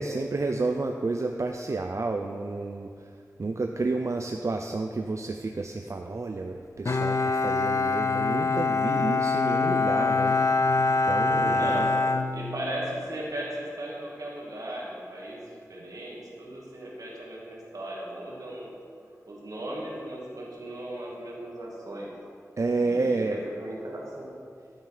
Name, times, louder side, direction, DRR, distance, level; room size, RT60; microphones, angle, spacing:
voice 1, 0.0-10.4 11.0-11.9 22.6-23.4, right 3 dB, 55° right, 4 dB, 0.5 m, -30 dB
Bowed string instrument, 6.8-13.0, left 3 dB, 60° left, 0.5 m, -25 dB
voice 2, 11.4-12.0 12.3-18.8 19.3-22.1 22.8-24.3, right 1 dB, 80° right, -4 dB, 2.3 m, -37 dB
13.0 x 6.6 x 5.0 m, 2.3 s
wide cardioid pair, 70°, 6 cm